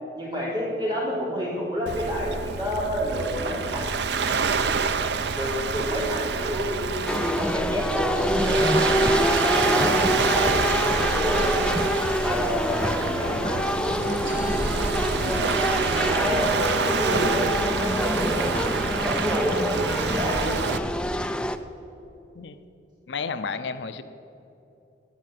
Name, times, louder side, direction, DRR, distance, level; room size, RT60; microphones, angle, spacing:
voice 1, 0.1-4.6 5.3-8.7 9.4-11.6 12.2-15.4 15.8-20.7, equal, 25° right, -4 dB, 3.5 m, -29 dB
Waves surf, 1.9-20.8, right 5 dB, 65° right, 0.5 m, -27 dB
sound 1, 7.1-21.6, left 1 dB, 5° left, 0.4 m, -26 dB
sound 2, 9.8-16.0, left 1 dB, 50° left, 0.9 m, -38 dB
voice 2, 23.1-24.0, left 5 dB, 75° left, 11 dB, 0.6 m, -31 dB
16.5 x 6.6 x 7.7 m, 2.8 s
head